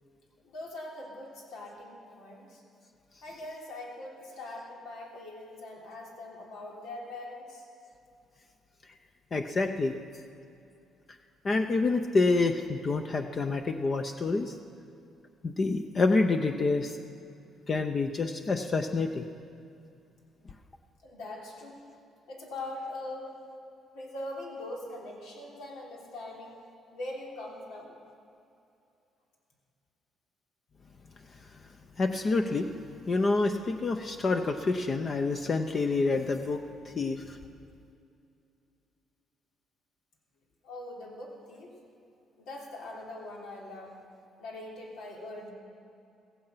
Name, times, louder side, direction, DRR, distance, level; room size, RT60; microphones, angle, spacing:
voice 1, 0.4-2.6 3.2-7.7 21.0-21.8 22.3-23.3 23.9-26.5 26.9-27.9 40.6-41.7 42.4-44.0 44.4-45.5, left 2 dB, 90° left, -1 dB, 3.3 m, -42 dB
voice 2, 9.3-9.9 11.4-14.6 15.4-17.0 17.7-19.2 32.0-37.4, left 3 dB, 35° left, 6 dB, 0.7 m, -28 dB
15.5 x 15.5 x 5.7 m, 2.6 s
cardioid pair, 125°, 0 cm